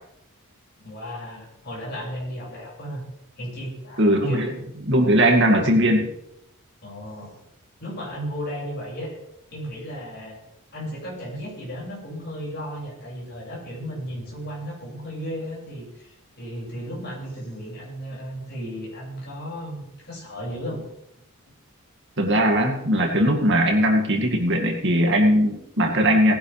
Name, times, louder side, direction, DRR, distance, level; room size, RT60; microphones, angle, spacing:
voice 1, 0.8-3.0 3.4-4.5 6.8-7.3 7.8-9.1 9.5-10.4 10.7-20.9, equal, 45° left, -4 dB, 6.1 m, -34 dB
voice 2, 4.0-6.1 22.2-26.4, equal, 55° right, 2 dB, 2.3 m, -19 dB
19.0 x 11.0 x 3.4 m, 0.80 s
head